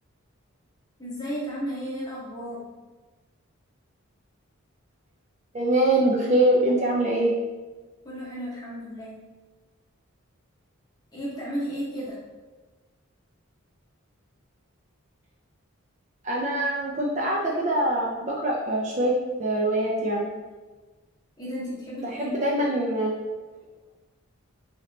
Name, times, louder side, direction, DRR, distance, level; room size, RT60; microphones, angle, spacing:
voice 1, 1.0-2.7 8.0-9.2 11.1-12.2 21.4-22.4, equal, 20° left, -6 dB, 0.8 m, -33 dB
voice 2, 5.5-7.3 16.2-19.1 19.4-20.3 22.2-23.2, right 1 dB, 35° right, -3 dB, 0.4 m, -23 dB
2.9 x 2.8 x 3.1 m, 1.3 s
head